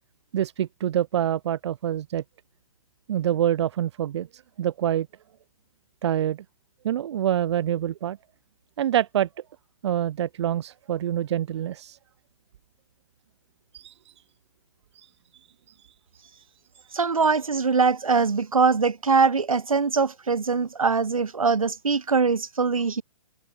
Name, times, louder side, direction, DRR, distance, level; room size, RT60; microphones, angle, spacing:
voice 1, 0.3-2.2 3.1-5.1 6.0-6.4 6.8-8.2 8.8-9.3 9.8-12.0 13.7-14.1 14.9-15.1 16.3-16.4, right 11 dB, 55° right, 2.4 m, -26 dB
voice 2, 16.9-23.0, right 5 dB, 85° right, 7.3 m, -22 dB
open air
hypercardioid pair, 135°, 17 cm